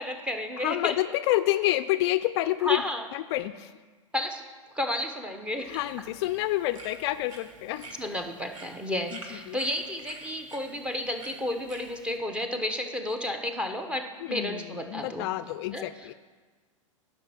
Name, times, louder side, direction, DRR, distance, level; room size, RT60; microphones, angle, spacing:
voice 1, 0.0-0.9 2.6-3.0 4.1-4.4 4.7-5.7 8.0-15.3 15.7-15.8, left 1 dB, 5° right, 5 dB, 0.9 m, -32 dB
voice 2, 0.6-2.8 3.1-3.7 5.6-8.0 9.1-9.6 14.2-16.1, left 15 dB, 55° left, 13 dB, 0.4 m, -28 dB
sound 1, 5.6-12.2, right 2 dB, 80° right, 1.6 m, -49 dB
11.0 x 5.5 x 5.9 m, 1.4 s
hypercardioid pair, 115°, 17 cm